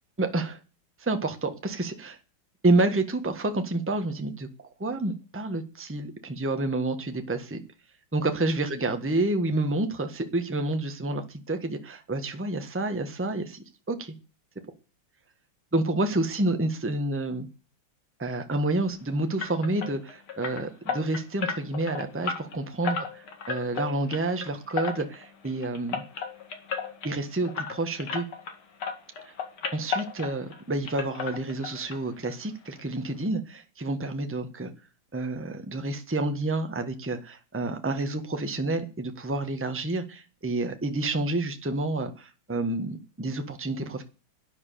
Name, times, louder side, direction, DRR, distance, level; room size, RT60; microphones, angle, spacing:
voice 1, 0.2-0.6 1.0-2.2 2.6-7.6 8.1-14.1 15.7-17.5 18.2-23.0 23.5-26.0 27.0-28.2 29.7-34.7 35.1-44.0, right 2 dB, 10° right, 7 dB, 1.1 m, -29 dB
sound 1, 19.4-28.6 28.8-30.6 30.9-32.0 32.2-32.4 32.8-32.9 33.2-33.3, left 6 dB, 90° left, 2.9 m, -34 dB
11.5 x 10.0 x 6.9 m, 0.33 s
omnidirectional pair, 2.2 m